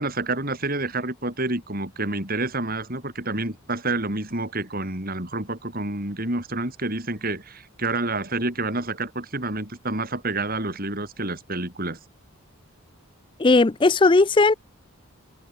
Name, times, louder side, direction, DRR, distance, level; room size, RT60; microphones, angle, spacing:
voice 1, 0.0-12.0, right 2 dB, 40° right, 4.5 m, -28 dB
voice 2, 13.4-14.5, left 3 dB, 20° left, 0.4 m, -17 dB
open air
head